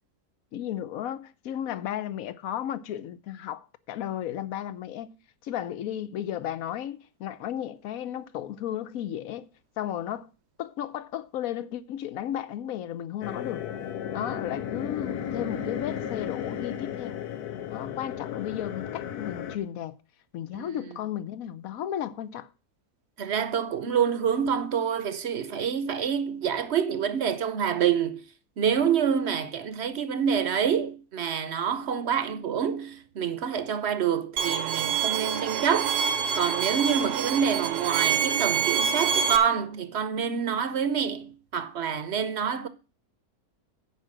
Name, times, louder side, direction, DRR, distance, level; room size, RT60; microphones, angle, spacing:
voice 1, 0.5-5.2 5.4-9.5 9.8-10.3 10.6-13.7 14.1-17.2 17.7-20.0 20.3-22.5, left 11 dB, 70° left, 1.1 m, -34 dB
sound 1, 13.2-19.6, left 9 dB, 85° left, 1.4 m, -34 dB
voice 2, 23.2-28.2 28.6-35.9 36.3-42.7, right 7 dB, 50° right, 0.9 m, -27 dB
Bowed string instrument, 34.4-39.4, right 7 dB, 90° right, 1.3 m, -26 dB
10.0 x 4.8 x 7.5 m
omnidirectional pair, 1.6 m